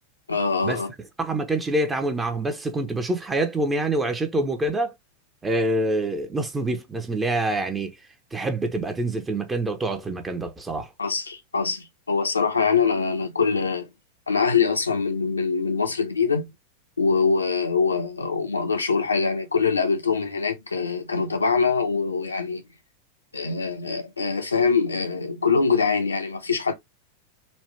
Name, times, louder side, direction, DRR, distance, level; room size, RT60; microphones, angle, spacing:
voice 1, 0.3-0.9 11.0-13.9 14.3-16.5 17.0-22.6 23.3-26.7, left 5 dB, 80° left, 0.9 m, -23 dB
voice 2, 1.2-4.9 5.4-7.9 8.3-10.9, right 2 dB, 15° right, 0.9 m, -26 dB
4.2 x 2.5 x 3.1 m
figure-of-eight pair, 90°, 0 cm